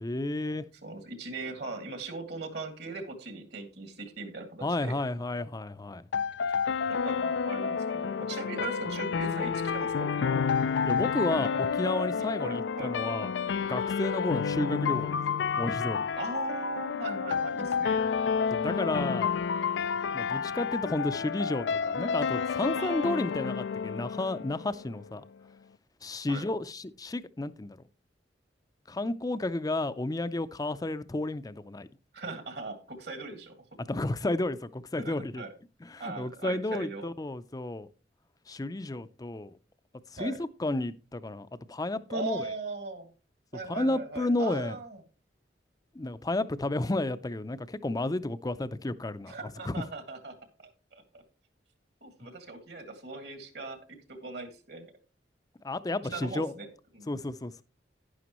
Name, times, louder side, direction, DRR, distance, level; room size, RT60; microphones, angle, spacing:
voice 1, 0.0-0.6 4.6-6.1 10.8-13.3 13.7-16.0 18.5-19.3 20.1-25.2 26.0-27.8 28.9-31.9 33.9-35.4 35.8-37.9 38.5-39.5 40.1-42.4 43.7-44.8 45.9-49.7 55.6-56.5 57.1-57.6, left 2 dB, 20° left, 0.5 m, -32 dB
voice 2, 0.8-5.0 6.9-10.5 11.3-11.5 12.4-12.9 16.2-18.0 22.7-23.4 26.3-26.5 32.1-33.5 35.0-35.5 36.0-37.0 40.2-40.4 42.1-43.1 43.5-45.0 49.3-50.3 50.6-51.2 52.0-54.9 56.1-56.7 56.9-57.1, right 3 dB, 65° right, 2.0 m, -39 dB
sound 1, 6.1-25.1, left 6 dB, 80° left, 0.4 m, -30 dB
11.5 x 10.0 x 3.0 m
head